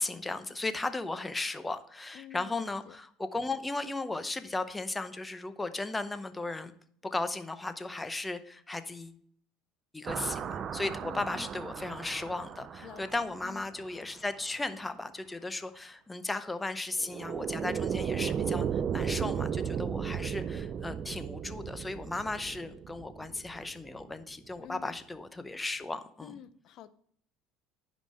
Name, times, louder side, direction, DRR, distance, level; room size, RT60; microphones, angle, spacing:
voice 1, 0.0-6.7 7.0-9.2 9.9-26.4, left 2 dB, 10° left, 0.7 m, -36 dB
voice 2, 2.1-3.0 11.0-11.5 12.8-13.6 24.6-24.9 26.2-26.9, left 11 dB, 55° left, 0.5 m, -49 dB
sound 1, 10.1-14.0 17.0-24.1, right 8 dB, 40° right, 0.5 m, -35 dB
9.6 x 5.3 x 5.4 m
supercardioid pair, 110°, 0 cm